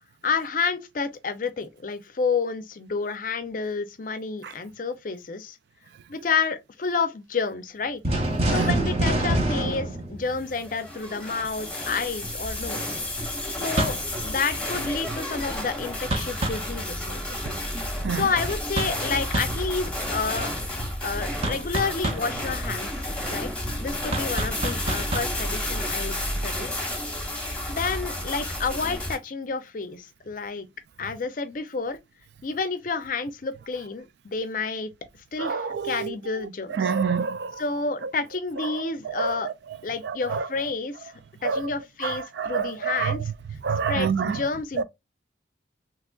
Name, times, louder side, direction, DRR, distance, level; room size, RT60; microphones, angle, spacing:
voice 1, 0.2-5.6 6.1-8.0 8.5-13.0 13.5-17.3 18.1-20.5 21.0-23.5 23.8-26.2 26.4-26.8 27.7-30.7 31.0-32.0 32.4-34.9 35.3-36.9 37.6-39.5 39.8-41.1 41.4-43.3 43.9-44.8, left 4 dB, 45° left, 0.5 m, -30 dB
sound 1, 8.0-10.9 13.8-14.1 16.1-16.7 18.8-19.1 19.3-19.6 21.4-22.3 24.1-25.4, right 1 dB, 35° right, 0.7 m, -26 dB
sound 2, 10.4-29.2, left 1 dB, 5° left, 0.9 m, -31 dB
voice 2, 35.4-36.1 36.7-37.6 39.2-39.4 40.0-40.4 41.4-41.6 42.0-43.2 43.6-44.4 44.8-44.9, right 6 dB, 65° right, 0.3 m, -27 dB
3.7 x 2.9 x 2.3 m
head